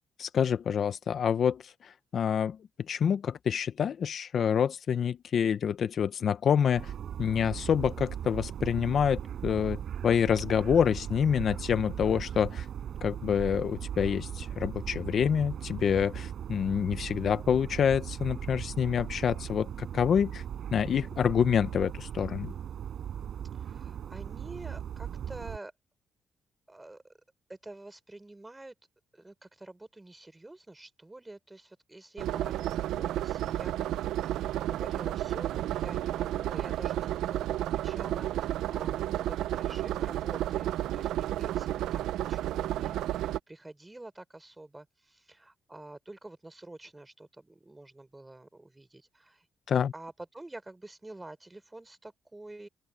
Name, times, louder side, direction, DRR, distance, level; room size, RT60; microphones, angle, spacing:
voice 1, 0.2-2.6 2.9-6.9 7.2-12.7 13.0-20.4 20.7-22.5 49.7-49.9, left 8 dB, 55° left, 0.9 m, -27 dB
sound 1, 6.7-25.6, right 9 dB, 65° right, 5.2 m, -38 dB
voice 2, 23.5-25.7 26.7-27.1 27.5-28.7 29.1-49.5 49.9-52.7, right 2 dB, 15° right, 5.4 m, -48 dB
sound 2, 32.2-43.4, right 13 dB, 85° right, 0.7 m, -32 dB
open air
cardioid pair, 90°, 0 cm